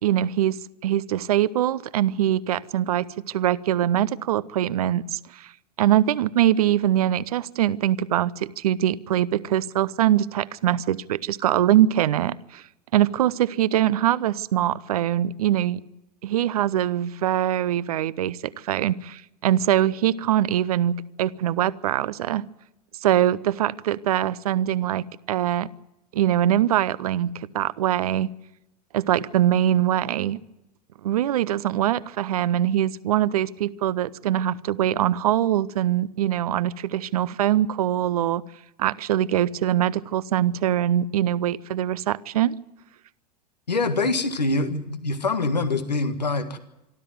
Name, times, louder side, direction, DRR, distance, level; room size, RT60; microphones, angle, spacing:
voice 1, 0.0-5.5 5.8-12.6 12.9-15.8 16.2-22.4 23.0-25.7 26.1-28.3 28.9-30.4 31.0-38.4 38.8-42.6, right 12 dB, 60° right, 18 dB, 0.8 m, -23 dB
voice 2, 43.7-46.6, left 3 dB, 80° left, 9 dB, 1.7 m, -24 dB
26.0 x 13.0 x 9.3 m, 0.91 s
figure-of-eight pair, 90°, 21 cm